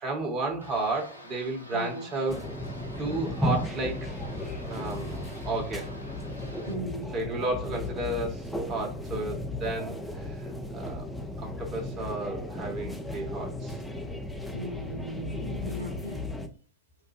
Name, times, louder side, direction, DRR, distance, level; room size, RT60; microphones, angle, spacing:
voice 1, 0.0-2.5 3.0-4.1 4.7-5.9 7.1-11.1 11.4-13.8, right 2 dB, 30° right, 1.2 m, -33 dB
sound 1, 0.6-6.8, left 1 dB, 85° left, 0.6 m, -48 dB
voice 2, 1.7-2.1 6.7-7.1 14.5-16.2, equal, 80° right, 0.6 m, -37 dB
sound 2, 2.3-16.5, left 1 dB, 5° left, 0.5 m, -35 dB
3.7 x 2.1 x 3.2 m
figure-of-eight pair, 90°, 0 cm